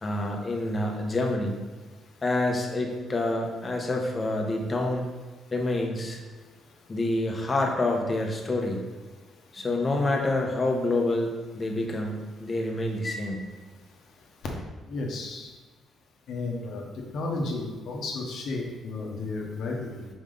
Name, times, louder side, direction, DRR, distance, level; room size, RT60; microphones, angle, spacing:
voice 1, 0.0-1.6 2.2-5.1 5.5-6.2 6.9-8.8 9.5-13.5, left 2 dB, 30° left, 1 dB, 1.2 m, -27 dB
voice 2, 14.9-15.5 16.3-16.8 17.1-20.1, left 3 dB, 70° left, 0 dB, 1.3 m, -33 dB
5.2 x 5.0 x 3.9 m, 1.3 s
cardioid pair, 90°, 0 cm